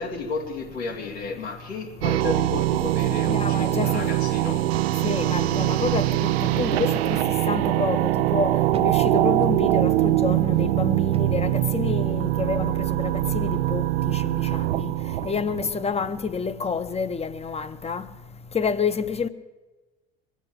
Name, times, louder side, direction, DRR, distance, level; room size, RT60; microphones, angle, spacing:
voice 1, 0.0-4.8, left 4 dB, 85° left, 2.6 m, -32 dB
sound 1, 2.0-16.1, right 16 dB, 80° right, 0.5 m, -23 dB
voice 2, 3.3-4.1 5.0-7.2 7.5-14.9 15.2-18.1 18.5-19.3, left 5 dB, 20° left, 0.8 m, -28 dB
sound 2, 3.3-3.6 3.9-4.0 4.7-5.0 6.5-6.9 7.5-7.7 8.7-9.1 9.8-10.0 11.0-11.4, right 6 dB, 20° right, 0.6 m, -41 dB
22.0 x 8.4 x 7.4 m
hypercardioid pair, 75°, 31 cm